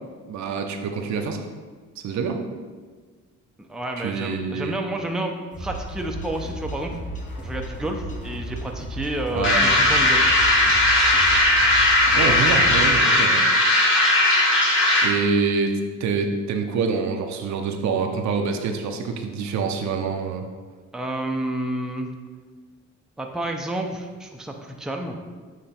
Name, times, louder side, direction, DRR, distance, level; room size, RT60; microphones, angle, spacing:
voice 1, 0.3-1.5 2.0-2.4 4.0-4.8 9.3-9.7 12.1-13.5 15.0-20.4, right 5 dB, 65° right, 4 dB, 0.7 m, -26 dB
voice 2, 3.7-6.9 7.4-10.3 12.1-12.4 20.9-22.1 23.2-25.2, right 1 dB, ahead, 2 dB, 0.6 m, -30 dB
sound 1, 5.5-13.0, equal, 25° left, 1.2 m, -34 dB
sound 2, 9.4-15.2, left 1 dB, 40° left, 1.7 m, -18 dB
7.5 x 3.0 x 4.3 m, 1.5 s
cardioid pair, 90°, 30 cm